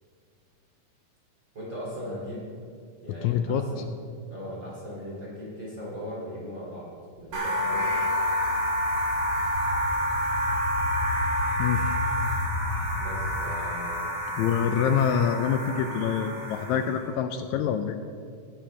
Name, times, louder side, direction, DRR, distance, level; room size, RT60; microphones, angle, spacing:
voice 1, 1.5-2.5 3.0-3.8 4.3-6.9 7.2-8.1 13.0-14.1, equal, 35° right, -6 dB, 3.1 m, -38 dB
voice 2, 3.1-3.7 11.6-11.8 14.4-18.0, left 8 dB, 80° left, 8 dB, 1.7 m, -26 dB
sound 1, 7.2-13.3, left 3 dB, 55° left, 1.3 m, -34 dB
sound 2, 7.3-17.0, equal, 70° right, 4.0 m, -29 dB
17.5 x 10.5 x 3.3 m, 2.3 s
omnidirectional pair, 3.7 m